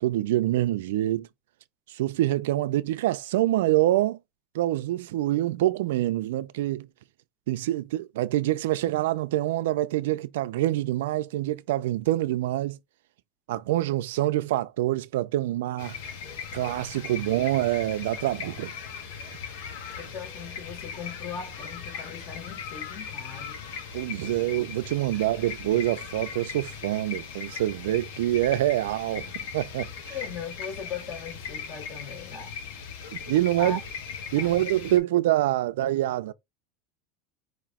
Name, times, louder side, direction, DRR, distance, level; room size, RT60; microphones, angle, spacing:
voice 1, 0.0-1.3 1.9-4.2 4.5-6.9 7.5-12.8 13.5-16.0 16.5-18.7 23.9-30.2 33.3-33.8 34.3-36.3, right 14 dB, 85° right, 0.4 m, -26 dB
sound 1, 15.8-35.0, left 6 dB, 85° left, 1.4 m, -39 dB
voice 2, 20.0-23.6 25.1-25.2 30.1-32.5 33.6-33.8 34.4-34.7, left 6 dB, 40° left, 2.2 m, -39 dB
4.9 x 3.0 x 3.5 m
supercardioid pair, 135°, 0 cm